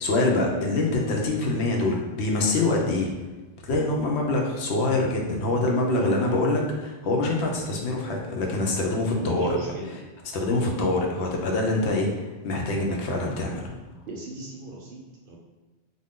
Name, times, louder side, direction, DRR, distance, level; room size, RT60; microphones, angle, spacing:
voice 1, 0.0-3.1 3.6-9.6 9.9-10.0 10.3-13.7, left 2 dB, 80° left, 0 dB, 0.8 m, -25 dB
voice 2, 6.0-6.4 9.1-9.9 14.1-15.4, right 1 dB, 60° right, -2 dB, 0.7 m, -35 dB
2.5 x 2.2 x 3.4 m, 1.2 s
omnidirectional pair, 1.1 m